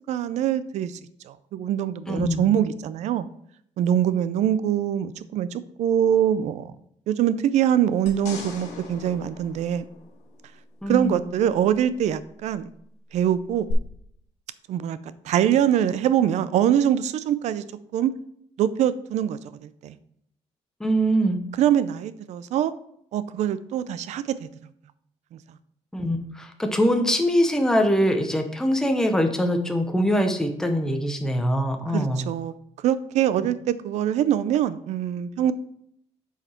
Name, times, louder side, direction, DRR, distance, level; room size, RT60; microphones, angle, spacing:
voice 1, 0.1-0.9 1.3-3.3 3.8-6.7 7.1-9.8 10.9-12.7 13.1-13.7 14.7-15.0 15.2-17.6 17.9-18.1 18.6-20.0 21.5-22.7 23.1-24.5 25.3-25.4 31.9-32.5 32.8-35.5, right 10 dB, 70° right, 15 dB, 0.5 m, -23 dB
voice 2, 2.1-2.4 10.8-11.3 20.8-21.4 25.9-32.2, equal, 5° left, 5 dB, 0.8 m, -23 dB
sound 1, 8.1-10.6 13.7-13.8, left 5 dB, 80° left, 1.4 m, -40 dB
7.9 x 4.7 x 4.3 m, 0.71 s
cardioid pair, 160°, 12 cm